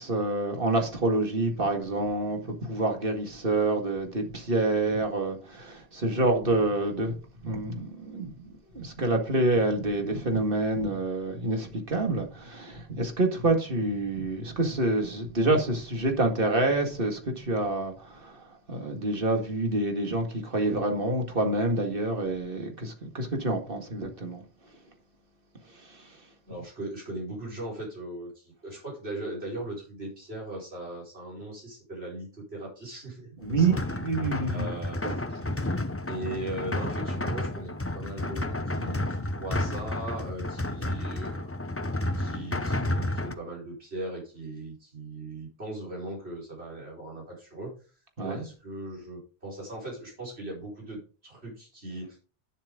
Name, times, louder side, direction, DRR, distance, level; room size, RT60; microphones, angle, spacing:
voice 1, 0.0-7.1 7.4-24.4 25.7-26.2 33.4-34.7 35.0-35.1 35.4-35.8 48.2-48.4, right 2 dB, 60° right, 2.2 m, -27 dB
voice 2, 26.5-33.8 34.5-35.2 36.1-41.5 42.1-47.7 48.2-52.2, right 1 dB, 85° right, 5.1 m, -39 dB
sound 1, 33.5-43.4, left 1 dB, 15° left, 0.6 m, -31 dB
10.0 x 7.3 x 3.8 m
omnidirectional pair, 1.0 m